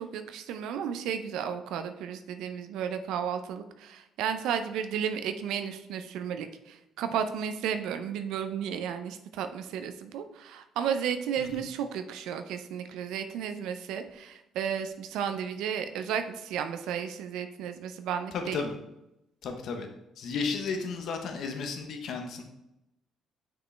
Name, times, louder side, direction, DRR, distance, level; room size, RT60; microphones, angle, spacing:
voice 1, 0.0-18.7, right 8 dB, 80° right, 8 dB, 0.5 m, -33 dB
voice 2, 18.3-18.8 19.4-19.9 20.2-22.4, left 5 dB, 65° left, 5 dB, 1.0 m, -33 dB
6.1 x 5.1 x 3.3 m, 0.87 s
cardioid pair, 85°, 0 cm